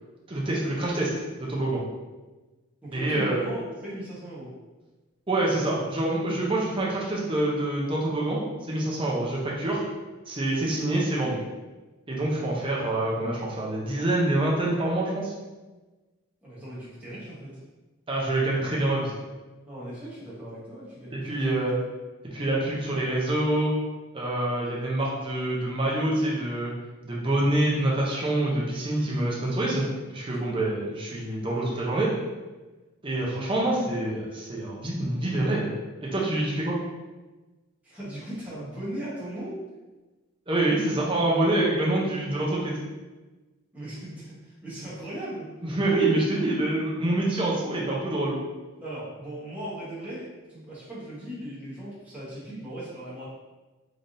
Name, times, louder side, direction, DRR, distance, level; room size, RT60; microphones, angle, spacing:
voice 1, 0.3-1.8 2.9-3.4 5.3-9.8 10.3-11.4 12.1-15.3 18.1-19.1 21.1-21.7 22.3-23.7 24.1-26.7 27.0-29.8 30.1-32.1 33.0-35.7 36.0-36.8 40.5-42.8 45.6-48.3, right 1 dB, 25° right, -4 dB, 0.7 m, -26 dB
voice 2, 2.8-4.5 16.4-17.6 19.7-21.7 37.8-39.6 43.7-45.5 48.8-53.2, right 1 dB, 5° right, -10 dB, 1.2 m, -38 dB
3.9 x 3.4 x 2.7 m, 1.2 s
head